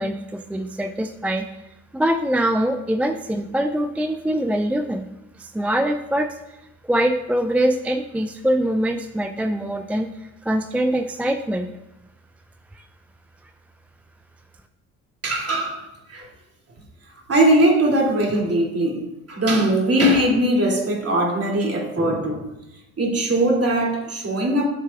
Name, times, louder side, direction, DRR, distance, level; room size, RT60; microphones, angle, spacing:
voice 1, 0.0-1.4 1.9-5.1 5.4-6.4 6.9-11.7 12.7-12.8, right 1 dB, 5° right, 7 dB, 0.3 m, -23 dB
voice 2, 15.2-16.3 17.3-19.0 19.3-22.5 23.0-24.7, right 1 dB, 30° right, -1 dB, 2.7 m, -20 dB
12.5 x 7.2 x 2.4 m, 0.95 s
figure-of-eight pair, 50°, 45 cm